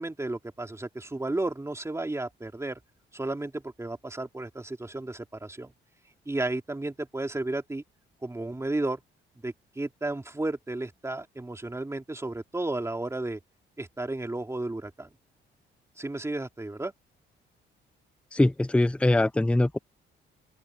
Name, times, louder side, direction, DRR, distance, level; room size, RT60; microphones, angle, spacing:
voice 1, 0.0-2.8 3.1-5.7 6.2-7.8 8.2-9.0 9.4-13.4 13.8-15.1 16.0-16.9, right 2 dB, 15° right, 3.1 m, -33 dB
voice 2, 18.3-19.8, left 1 dB, 5° left, 0.6 m, -22 dB
open air
cardioid pair, 90°, 20 cm